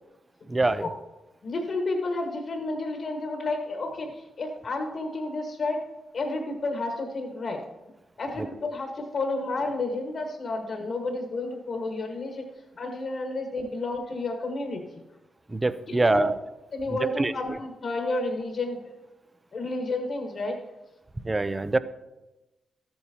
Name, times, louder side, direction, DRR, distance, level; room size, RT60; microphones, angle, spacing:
voice 1, 0.5-0.9 15.5-16.3 16.9-17.3 21.2-21.8, right 2 dB, 25° right, 14 dB, 0.6 m, -24 dB
voice 2, 1.4-5.8 6.1-7.6 8.2-12.5 12.7-14.8 15.9-16.3 16.7-18.8 19.5-20.5, left 2 dB, 65° left, 3 dB, 1.5 m, -31 dB
13.5 x 8.9 x 2.9 m, 1.0 s
supercardioid pair, 50°, 0 cm